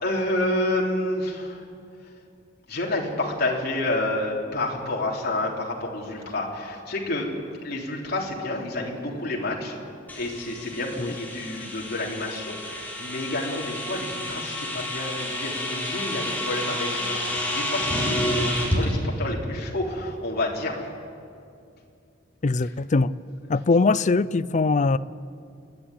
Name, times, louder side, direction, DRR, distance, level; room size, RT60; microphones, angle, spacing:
voice 1, 0.0-1.6 2.7-7.4 7.6-9.8 10.2-20.9, left 1 dB, 55° left, -2 dB, 3.5 m, -29 dB
sound 1, 10.1-18.8, left 1 dB, 10° left, 4.5 m, -29 dB
voice 2, 22.4-23.1 23.5-25.0, left 3 dB, 40° left, 17 dB, 0.5 m, -21 dB
28.5 x 11.5 x 9.9 m, 2.4 s
head